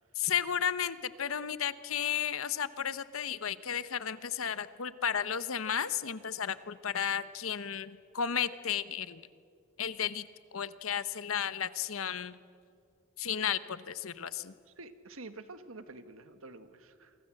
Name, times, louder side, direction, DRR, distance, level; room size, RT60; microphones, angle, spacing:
voice 1, 0.2-9.2 9.8-12.4 13.2-14.5, left 8 dB, 75° left, 14 dB, 1.0 m, -33 dB
voice 2, 14.8-17.2, right 3 dB, 75° right, 10 dB, 1.7 m, -48 dB
28.5 x 24.0 x 7.8 m, 2.3 s
head